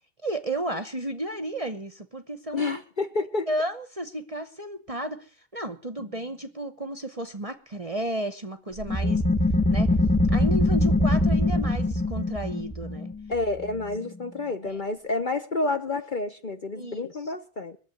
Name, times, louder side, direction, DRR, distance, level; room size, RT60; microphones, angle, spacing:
voice 1, 0.2-2.8 3.5-9.3 9.7-9.9 10.3-13.1 14.6-14.8 16.7-17.1, right 1 dB, 30° right, 10 dB, 0.9 m, -33 dB
voice 2, 2.5-3.5 13.3-17.8, left 3 dB, 40° left, 8 dB, 0.9 m, -29 dB
sound 1, 8.8-14.1, left 1 dB, 5° left, 0.8 m, -23 dB
21.5 x 7.4 x 9.2 m, 0.41 s
omnidirectional pair, 1.5 m